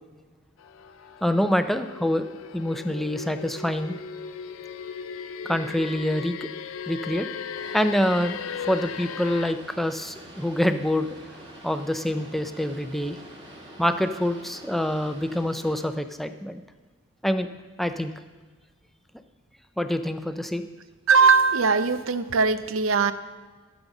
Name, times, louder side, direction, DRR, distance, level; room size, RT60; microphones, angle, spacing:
sound 1, 0.6-9.5, left 6 dB, 90° left, 0.5 m, -37 dB
voice 1, 1.2-2.3 2.5-3.9 5.4-6.5 6.9-7.3 7.7-11.2 11.6-13.2 13.8-16.6 17.2-17.5 17.8-18.1 19.8-20.6, left 1 dB, ahead, 9 dB, 0.5 m, -26 dB
Boat Water vehicle, 7.5-15.9, right 1 dB, 25° right, 2.1 m, -46 dB
voice 2, 21.1-23.1, right 5 dB, 80° right, 13 dB, 0.6 m, -20 dB
13.0 x 5.2 x 7.1 m, 1.4 s
head